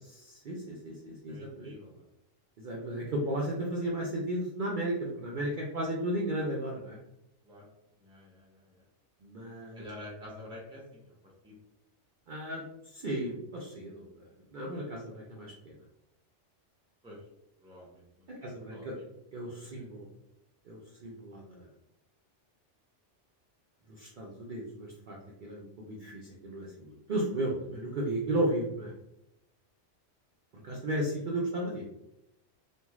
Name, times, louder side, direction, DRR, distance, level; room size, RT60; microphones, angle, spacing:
voice 1, 0.1-1.7 2.6-7.0 9.2-9.8 12.3-15.7 18.3-19.0 19.3-20.1 20.6-21.7 23.9-28.9 30.5-31.8, right 1 dB, 55° right, -3 dB, 0.6 m, -35 dB
voice 2, 1.3-2.0 7.4-7.7 8.0-8.8 9.7-11.1 11.4-11.6 17.0-17.2 17.6-18.9 19.6-19.8, left 1 dB, 5° right, -4 dB, 0.6 m, -48 dB
3.0 x 2.6 x 2.3 m, 0.84 s
omnidirectional pair, 1.2 m